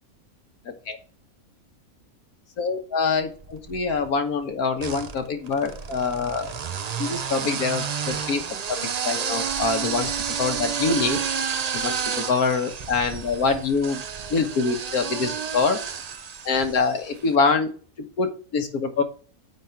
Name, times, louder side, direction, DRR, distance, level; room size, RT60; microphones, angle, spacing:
voice 1, 2.6-6.5 7.0-8.4 9.0-10.1 10.4-11.2 11.7-14.0 14.3-15.8 16.4-17.7 18.2-19.0, left 4 dB, 85° left, 6 dB, 1.7 m, -25 dB
sound 1, 3.4-4.1 4.8-17.1, right 7 dB, 70° right, 0.3 m, -30 dB
8.9 x 3.9 x 5.8 m, 0.39 s
omnidirectional pair, 1.5 m